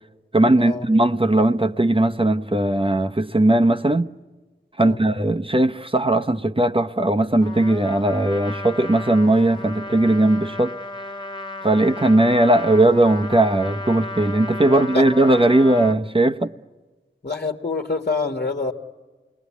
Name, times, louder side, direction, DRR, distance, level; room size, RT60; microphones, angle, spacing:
voice 1, 0.3-4.1 4.8-10.8 11.6-16.5, right 1 dB, 25° right, 0.8 m, -18 dB
Trumpet, 7.4-16.0, left 2 dB, 25° left, 1.3 m, -34 dB
voice 2, 14.7-15.1 17.2-18.7, left 4 dB, 55° left, 1.5 m, -26 dB
28.5 x 20.5 x 8.3 m
wide cardioid pair, 45°, 20 cm